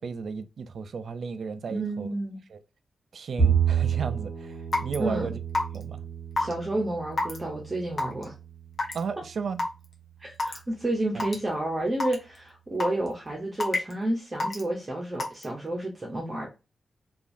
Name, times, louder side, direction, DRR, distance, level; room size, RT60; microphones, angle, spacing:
voice 1, 0.0-2.1 2.5-2.6 3.1-5.4 5.7-6.0 8.9-9.6 11.1-11.2, right 5 dB, 70° right, 0.3 m, -34 dB
voice 2, 1.7-2.4 5.0-5.3 6.4-8.3 10.2-16.5, right 1 dB, 25° right, 0.7 m, -30 dB
Bowed string instrument, 3.4-9.7, right 7 dB, 5° right, 1.0 m, -30 dB
Raindrop / Water tap faucet / Drip, 4.7-4.9 5.5-5.8 6.4-6.5 7.2-7.4 8.0-8.2 8.8-9.0 9.6-9.7 10.4-10.6 11.2-11.3 12.0-12.1 12.8-13.1 13.6-13.9 14.4-14.6 15.2-15.4, left 2 dB, 45° left, 0.9 m, -26 dB
2.9 x 2.4 x 2.5 m
wide cardioid pair, 110°, 0 cm